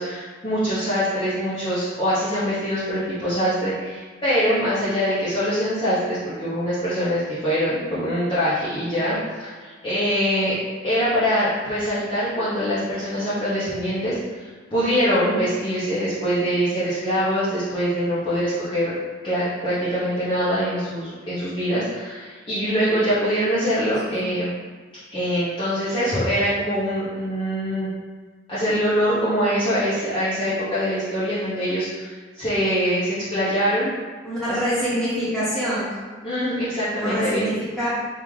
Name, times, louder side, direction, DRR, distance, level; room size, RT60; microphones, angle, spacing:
voice 1, 0.0-10.6 10.8-18.9 19.2-24.5 25.1-27.9 28.5-33.9 34.5-34.6 36.2-37.5, equal, 25° left, -13 dB, 0.8 m, -23 dB
voice 2, 34.2-35.9 36.9-37.9, equal, 5° left, -11 dB, 1.4 m, -25 dB
3.6 x 2.8 x 3.1 m, 1.5 s
head